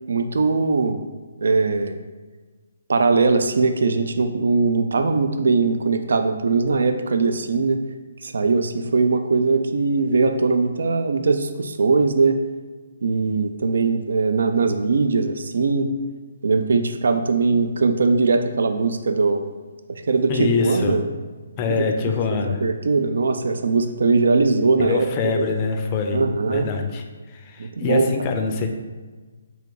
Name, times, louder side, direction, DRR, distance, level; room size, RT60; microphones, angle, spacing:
voice 1, 0.1-1.0 1.4-2.0 2.9-7.8 8.2-12.4 13.0-15.9 16.4-19.4 19.9-21.0 21.7-21.9 22.4-25.1 25.3-25.4 26.1-26.7 27.6-28.1, right 4 dB, 70° right, 7 dB, 0.3 m, -20 dB
voice 2, 20.3-21.0 21.6-22.6 24.8-26.2 26.5-28.7, left 4 dB, 30° left, 4 dB, 0.5 m, -24 dB
3.5 x 2.8 x 3.8 m, 1.4 s
figure-of-eight pair, 140°, 0 cm